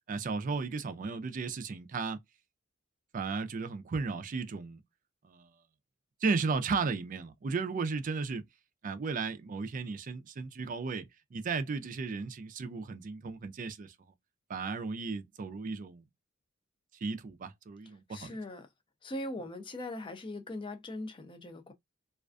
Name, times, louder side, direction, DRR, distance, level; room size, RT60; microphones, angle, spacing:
voice 1, 0.1-2.2 3.1-4.8 5.2-5.5 6.2-8.4 8.8-13.9 14.5-16.0 17.0-18.4, right 4 dB, 40° right, 0.4 m, -35 dB
voice 2, 18.1-18.7 19.0-21.7, left 1 dB, 25° left, 0.4 m, -40 dB
2.4 x 2.3 x 2.3 m
head